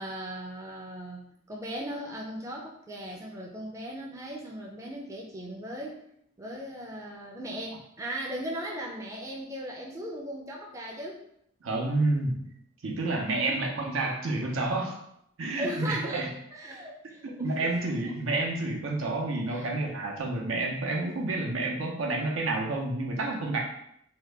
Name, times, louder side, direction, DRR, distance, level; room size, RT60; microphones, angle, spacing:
voice 1, 0.0-6.0 6.4-11.2 13.3-13.6 15.6-18.4 19.5-19.7, right 1 dB, 15° right, -2 dB, 0.4 m, -38 dB
voice 2, 11.6-12.5 12.8-15.0 15.4-16.3 17.2-23.6, right 2 dB, 90° right, 0 dB, 0.7 m, -29 dB
2.8 x 2.2 x 3.3 m, 0.73 s
head